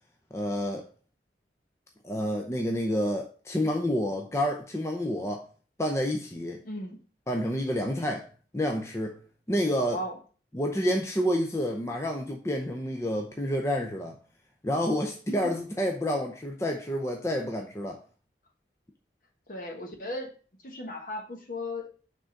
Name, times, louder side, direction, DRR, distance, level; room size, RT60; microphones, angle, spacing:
voice 1, 0.3-0.9 2.0-5.4 5.8-6.6 7.3-8.3 8.5-9.1 9.5-10.0 10.5-14.2 14.6-18.0, equal, 15° left, 0.6 m, -29 dB
voice 2, 6.6-7.0 9.8-10.2 15.3-15.4 19.5-20.3 20.6-21.9, left 1 dB, 50° left, 1.3 m, -36 dB
6.1 x 3.7 x 5.2 m
head